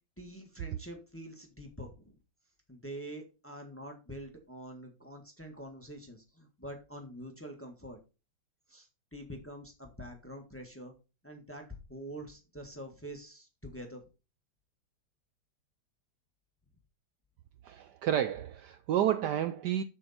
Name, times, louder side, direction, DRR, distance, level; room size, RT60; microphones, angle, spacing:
voice 1, 0.2-2.1 2.7-8.0 8.7-10.9 11.2-11.6 11.9-14.1, right 1 dB, 10° left, 1.2 m, -46 dB
voice 2, 17.6-19.8, right 11 dB, 75° right, 1.0 m, -30 dB
7.4 x 7.2 x 4.2 m
omnidirectional pair, 2.2 m